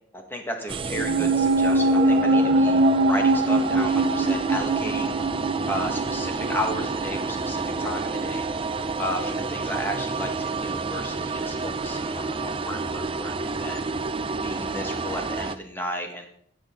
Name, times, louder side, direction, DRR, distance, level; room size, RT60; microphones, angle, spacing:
voice 1, 0.1-5.1 5.7-8.4 9.0-13.9 14.4-16.3, equal, 10° left, 3 dB, 1.8 m, -33 dB
sound 1, 0.7-15.6, right 3 dB, 30° right, 0.5 m, -29 dB
sound 2, 0.9-7.5 7.8-7.9, right 2 dB, 70° right, 0.7 m, -22 dB
16.0 x 6.6 x 3.9 m, 0.64 s
head